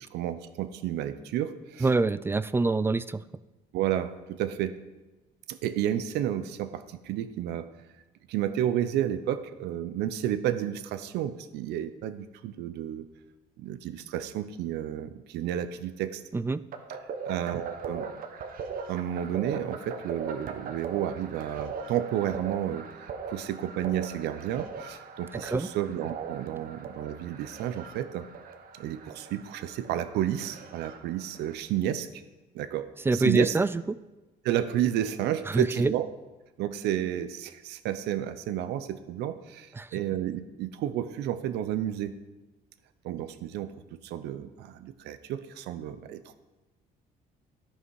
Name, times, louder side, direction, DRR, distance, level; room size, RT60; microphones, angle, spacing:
voice 1, 0.1-1.9 3.7-4.8 5.5-7.7 8.3-13.0 13.6-16.2 17.2-18.1 18.9-22.8 23.3-28.3 28.8-32.2 32.5-33.6 34.4-36.0 36.6-42.1 43.0-43.7 44.0-46.4, right 11 dB, 80° right, 12 dB, 0.7 m, -31 dB
voice 2, 1.8-3.2 16.3-16.6 25.4-25.7 33.1-34.0 35.5-35.9 39.7-40.0, right 3 dB, 15° right, 16 dB, 0.3 m, -25 dB
sound 1, 16.7-31.5, right 5 dB, 60° right, 1.1 m, -40 dB
13.0 x 5.6 x 4.7 m, 1.1 s
cardioid pair, 110°, 17 cm